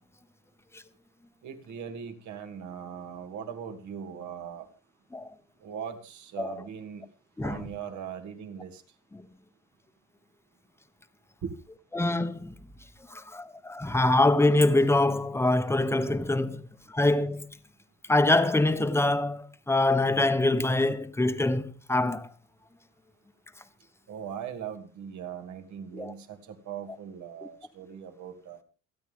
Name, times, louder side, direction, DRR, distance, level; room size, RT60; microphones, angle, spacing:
voice 1, 1.4-4.7 5.6-7.0 7.4-8.8 11.4-11.6 24.1-28.6, right 8 dB, 65° right, 2.5 m, -40 dB
voice 2, 11.9-12.5 13.1-16.6 16.9-17.4 18.1-22.3 25.9-26.1, left 2 dB, 10° left, 1.2 m, -24 dB
27.5 x 9.3 x 3.6 m
cardioid pair, 120°, 31 cm